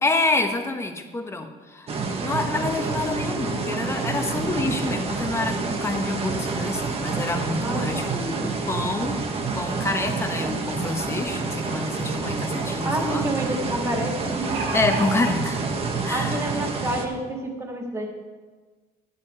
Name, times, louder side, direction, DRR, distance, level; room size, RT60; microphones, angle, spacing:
voice 1, 0.0-1.9 2.2-9.3 9.5-13.3 14.7-15.6 16.0-16.4, left 3 dB, 15° left, 5 dB, 1.1 m, -27 dB
sound 1, 1.9-17.1, right 4 dB, 35° right, 1.2 m, -28 dB
voice 2, 7.6-8.1 12.8-14.6 16.1-18.1, right 1 dB, 15° right, 1 dB, 2.0 m, -28 dB
sound 2, 12.4-12.5 14.1-15.3 16.2-16.3 16.7-16.8, right 4 dB, 80° right, 1.7 m, -31 dB
11.5 x 9.7 x 4.4 m, 1.3 s
cardioid pair, 130°, 17 cm